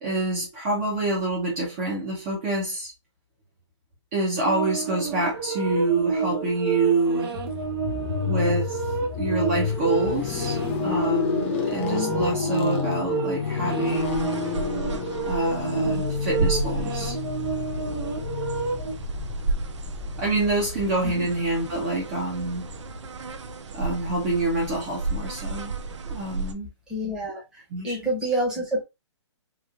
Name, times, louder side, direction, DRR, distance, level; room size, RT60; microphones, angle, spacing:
voice 1, 0.0-2.9 4.1-7.3 8.3-8.8 9.2-14.3 15.2-17.2 20.2-22.7 23.7-25.7 26.0-26.7 27.7-28.0, right 2 dB, 25° right, 0.8 m, -26 dB
sound 1, 4.4-18.9, right 5 dB, 55° right, 0.9 m, -30 dB
sound 2, 7.4-23.5, left 8 dB, 25° left, 0.4 m, -31 dB
sound 3, 13.9-26.5, right 3 dB, 75° right, 0.5 m, -33 dB
voice 2, 26.9-27.4 27.8-28.8, right 1 dB, 5° right, 1.0 m, -27 dB
3.1 x 2.6 x 2.4 m
hypercardioid pair, 155°, 15 cm